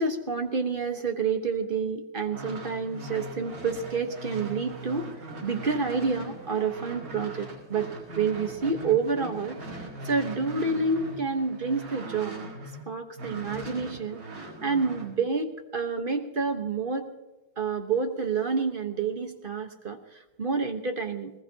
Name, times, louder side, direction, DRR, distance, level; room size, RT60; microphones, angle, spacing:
voice 1, 0.0-5.1 5.4-7.9 8.2-9.6 10.0-12.4 12.9-14.2 14.6-17.1 17.6-20.0 20.4-21.3, right 4 dB, 35° right, 5 dB, 1.2 m, -28 dB
sound 1, 2.2-12.8 13.2-15.1, right 2 dB, 55° right, 5.8 m, -40 dB
20.5 x 19.5 x 2.8 m, 1.0 s
omnidirectional pair, 2.0 m